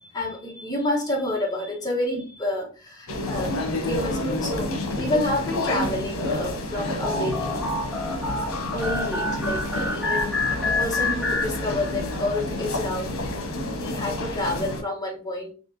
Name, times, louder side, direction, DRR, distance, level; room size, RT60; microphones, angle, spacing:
voice 1, 0.0-3.5 3.8-7.6 8.7-13.2 13.8-15.5, left 1 dB, 20° left, -2 dB, 1.1 m, -29 dB
sound 1, 3.1-14.8, left 1 dB, 80° left, 0.9 m, -29 dB
sound 2, 7.0-12.1, left 2 dB, ahead, 0.7 m, -28 dB
4.3 x 3.0 x 2.7 m, 0.37 s
head